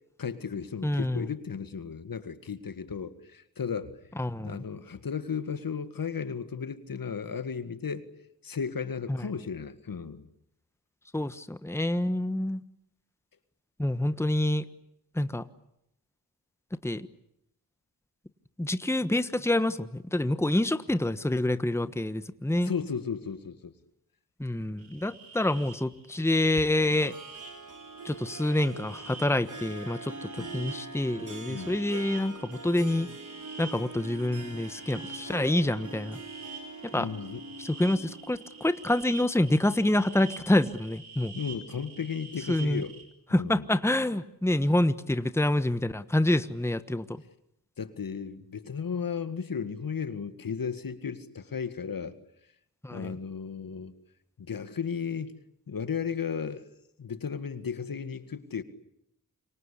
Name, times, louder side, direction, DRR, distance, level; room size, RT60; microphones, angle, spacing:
voice 1, 0.2-4.0 4.4-8.0 8.4-10.3 22.6-23.7 30.4-30.5 31.5-31.8 36.9-37.4 41.4-42.9 43.3-43.7 47.8-52.2 52.9-53.9 54.4-55.4 55.7-56.6 57.0-58.6, left 6 dB, 65° left, 11 dB, 1.9 m, -35 dB
voice 2, 0.8-1.3 4.2-4.6 9.1-9.2 11.1-12.6 13.8-14.6 15.1-15.5 16.8-17.1 18.6-22.7 24.4-27.1 28.0-33.1 33.6-36.2 36.8-37.1 37.6-41.4 42.5-42.8 43.3-47.2 52.8-53.1, left 1 dB, 5° left, 12 dB, 1.3 m, -27 dB
sound 1, 24.8-43.0, right 4 dB, 70° right, 6.1 m, -48 dB
Harp, 27.0-39.2, right 3 dB, 55° right, 3.5 m, -44 dB
27.0 x 24.0 x 8.5 m, 0.79 s
cardioid pair, 45°, 37 cm